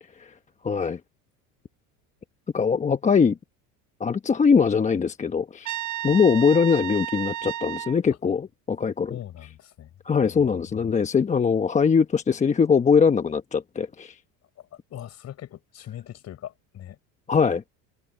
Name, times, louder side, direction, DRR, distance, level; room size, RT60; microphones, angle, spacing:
voice 1, 0.6-1.0 2.5-3.4 4.0-5.7 6.0-9.2 10.0-14.2 17.3-17.6, left 6 dB, 20° left, 0.9 m, -21 dB
Trumpet, 5.6-8.0, right 12 dB, 50° right, 1.0 m, -32 dB
voice 2, 9.1-9.9 10.2-10.9 14.6-17.0, left 11 dB, 45° left, 4.3 m, -41 dB
supercardioid pair, 120°, 37 cm